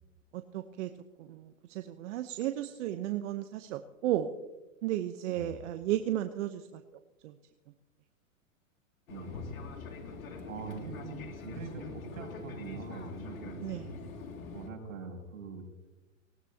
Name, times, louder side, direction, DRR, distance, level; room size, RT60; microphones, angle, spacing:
voice 1, 0.3-0.9 1.2-4.3 4.8-6.8 7.2-7.4 13.6-13.9, right 13 dB, 60° right, 8 dB, 1.0 m, -34 dB
voice 2, 5.3-5.6 9.1-9.8 10.5-13.7 14.5-15.7, right 3 dB, 80° right, 0 dB, 6.3 m, -43 dB
Fixed-wing aircraft airplane, 9.1-14.7, left 4 dB, 85° left, 2.7 m, -44 dB
19.5 x 18.0 x 2.9 m, 1.1 s
hypercardioid pair, 125°, 41 cm